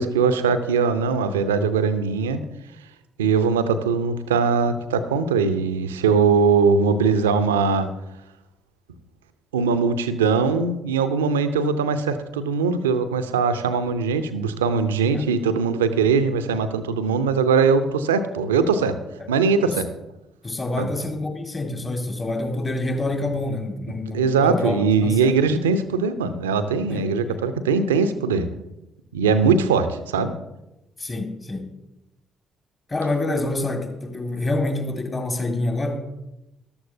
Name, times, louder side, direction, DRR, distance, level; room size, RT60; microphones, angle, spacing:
voice 1, 0.0-2.4 3.2-7.9 9.5-19.0 19.3-19.9 20.8-20.9 24.1-28.5 29.1-30.3, right 5 dB, 75° right, 11 dB, 0.6 m, -21 dB
voice 2, 20.4-25.3 26.9-27.0 27.3-27.4 31.0-31.7 32.9-36.0, left 2 dB, 30° left, 4 dB, 1.9 m, -27 dB
14.0 x 12.5 x 2.7 m, 0.94 s
figure-of-eight pair, 40°, 0 cm